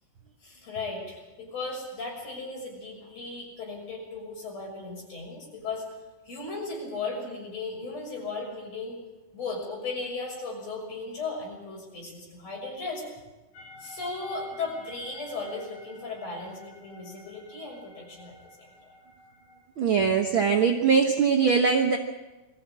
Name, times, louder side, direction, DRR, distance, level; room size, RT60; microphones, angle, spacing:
voice 1, 0.4-5.9 6.2-9.0 9.3-13.0 13.8-19.0, left 3 dB, 45° left, -1 dB, 7.3 m, -36 dB
sound 1, 13.5-19.6, equal, 85° left, 4.8 m, -50 dB
voice 2, 19.8-22.0, right 6 dB, 80° right, 3 dB, 1.1 m, -22 dB
22.0 x 14.5 x 8.8 m, 1.1 s
omnidirectional pair, 4.1 m